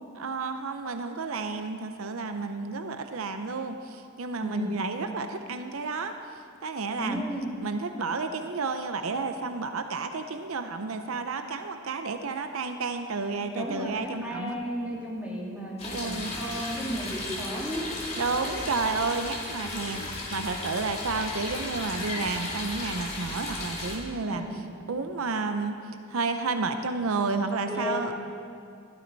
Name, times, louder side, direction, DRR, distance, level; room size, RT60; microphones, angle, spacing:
voice 1, 0.1-6.2 6.6-7.2 7.6-14.6 15.9-16.3 18.2-24.4 24.9-25.8 26.1-28.2, right 4 dB, 80° right, 7 dB, 0.7 m, -31 dB
voice 2, 4.4-4.7 7.0-7.5 13.5-18.6 21.1-21.4 24.3-24.7 27.7-28.2, equal, 5° right, -5 dB, 2.6 m, -34 dB
sound 1, 15.8-24.0, left 2 dB, 30° left, 2.3 m, -35 dB
15.0 x 12.5 x 4.0 m, 2.4 s
head